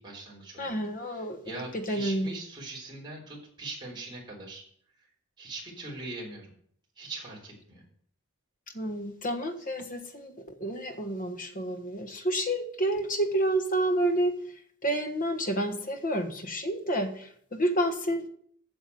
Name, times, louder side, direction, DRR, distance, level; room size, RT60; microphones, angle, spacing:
voice 1, 0.0-0.8 1.0-4.6 5.4-6.5 7.0-7.8, right 2 dB, 20° right, -4 dB, 3.5 m, -41 dB
voice 2, 0.6-2.3 8.7-14.4 14.8-18.3, right 1 dB, 40° left, 6 dB, 1.3 m, -29 dB
8.5 x 7.0 x 7.9 m, 0.62 s
head